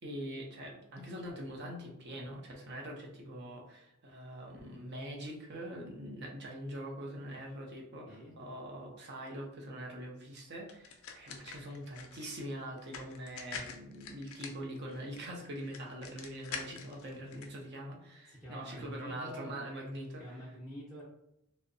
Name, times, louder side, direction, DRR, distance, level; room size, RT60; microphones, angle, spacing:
voice 1, 0.0-20.4, right 1 dB, 50° right, 0 dB, 0.6 m, -43 dB
sound 1, 10.7-17.5, left 6 dB, 65° left, 0.4 m, -46 dB
voice 2, 18.3-19.5 20.2-21.0, equal, ahead, -8 dB, 0.5 m, -46 dB
2.7 x 2.0 x 2.5 m, 0.82 s
head